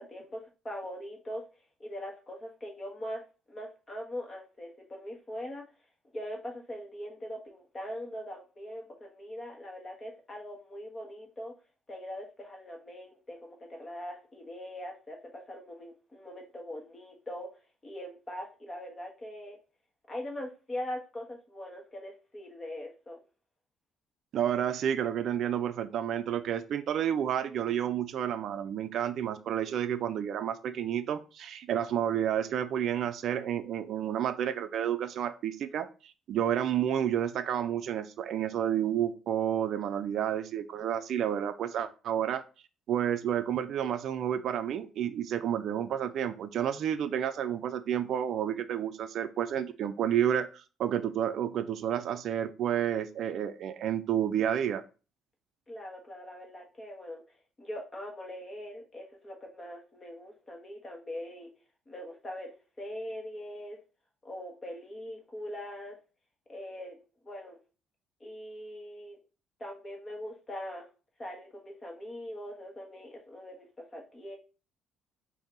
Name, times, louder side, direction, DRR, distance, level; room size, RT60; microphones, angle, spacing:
voice 1, 0.0-1.4 1.8-5.6 6.1-11.5 11.9-17.5 17.8-19.6 20.1-23.2 55.7-61.5 61.9-63.8 64.2-66.0 66.5-67.0 67.2-67.6 68.2-69.2 69.6-70.9 71.2-74.4, left 1 dB, 25° left, 0 dB, 1.4 m, -42 dB
voice 2, 24.3-42.4 42.9-54.8, right 9 dB, 60° right, 11 dB, 0.4 m, -30 dB
5.1 x 2.6 x 3.9 m, 0.34 s
cardioid pair, 125°, 0 cm